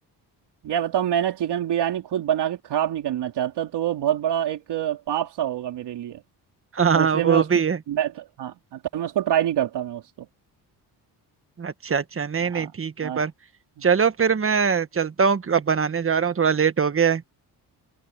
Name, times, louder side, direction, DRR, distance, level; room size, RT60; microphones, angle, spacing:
voice 1, 0.6-6.2 6.9-7.5 7.9-10.3 12.4-12.7 13.0-13.2 13.8-13.9, right 10 dB, 75° right, 3.4 m, -26 dB
voice 2, 6.7-7.8 11.6-13.3 13.8-17.2, right 6 dB, 30° right, 1.4 m, -22 dB
cardioid pair, 95°, 41 cm